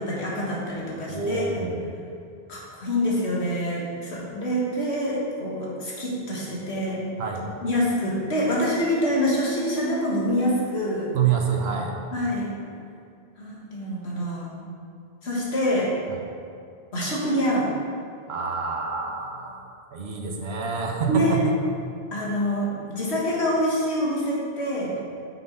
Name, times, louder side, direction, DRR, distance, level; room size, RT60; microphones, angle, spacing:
voice 1, 0.0-1.7 2.5-7.1 7.6-11.1 12.1-12.5 13.4-14.7 15.2-15.9 16.9-17.7 21.1-21.4 22.1-25.0, equal, 85° left, -5 dB, 1.9 m, -26 dB
voice 2, 1.1-2.0 7.2-7.5 11.1-12.0 16.1-16.2 18.3-21.6, right 5 dB, 75° right, 2 dB, 1.1 m, -27 dB
6.2 x 5.8 x 5.3 m, 2.4 s
omnidirectional pair, 1.1 m